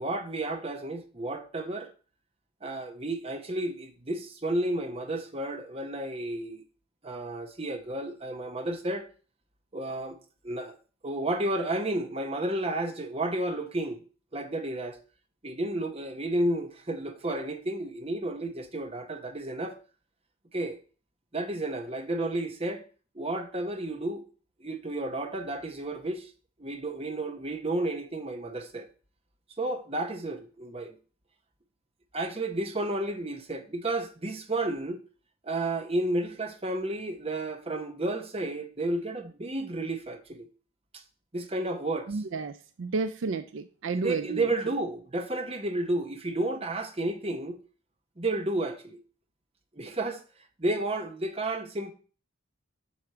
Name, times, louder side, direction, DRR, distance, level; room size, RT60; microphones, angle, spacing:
voice 1, 0.0-1.9 2.6-6.6 7.0-9.1 9.7-10.2 10.4-10.7 11.0-14.0 14.3-15.0 15.4-19.8 20.5-20.8 21.3-22.8 23.1-24.2 24.6-26.3 26.6-28.9 29.6-30.9 32.1-35.0 35.4-40.5 40.9-41.0 41.3-42.2 43.9-47.6 48.2-49.0 49.7-50.2 50.6-51.9, right 1 dB, 25° right, 1.0 m, -32 dB
voice 2, 42.1-42.5 42.8-44.5, right 4 dB, 60° right, 0.4 m, -31 dB
8.1 x 4.9 x 6.9 m
head